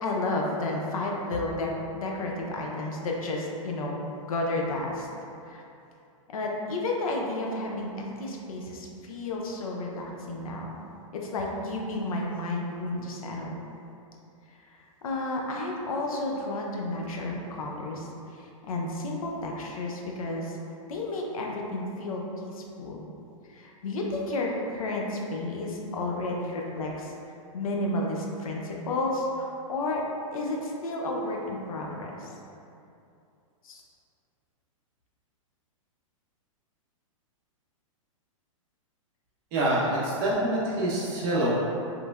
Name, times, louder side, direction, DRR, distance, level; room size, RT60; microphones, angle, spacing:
voice 1, 0.0-5.1 5.5-5.6 6.3-10.7 11.1-13.6 14.5-20.6 20.9-23.1 23.5-30.0 30.3-32.3 33.6-33.8, left 2 dB, 85° left, -1 dB, 0.5 m, -32 dB
voice 2, 39.5-41.5, right 1 dB, 35° right, -6 dB, 0.6 m, -26 dB
3.1 x 2.1 x 2.2 m, 2.6 s
hypercardioid pair, 145°, 18 cm